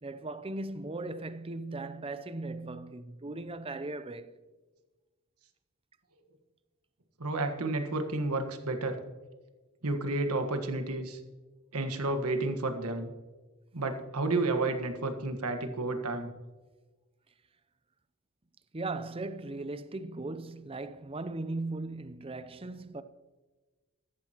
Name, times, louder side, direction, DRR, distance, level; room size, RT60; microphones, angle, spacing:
voice 1, 0.0-4.3 18.7-23.0, right 2 dB, 25° right, 0.6 m, -38 dB
voice 2, 7.2-9.0 9.8-11.2 11.7-13.1 13.7-16.3, right 2 dB, 85° right, 1.5 m, -31 dB
14.5 x 13.0 x 3.0 m
head